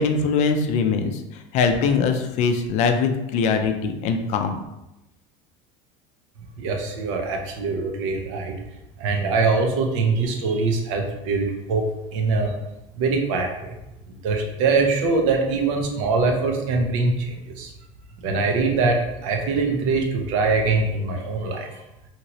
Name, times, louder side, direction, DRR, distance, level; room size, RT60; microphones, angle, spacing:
voice 1, 0.0-4.6, left 5 dB, 50° left, 6 dB, 0.4 m, -22 dB
voice 2, 6.6-8.5 9.0-11.8 12.1-12.6 13.0-13.8 14.1-17.7 18.2-21.8, right 4 dB, 90° right, 3 dB, 0.6 m, -23 dB
2.9 x 2.7 x 2.9 m, 0.93 s
cardioid pair, 145°, 15 cm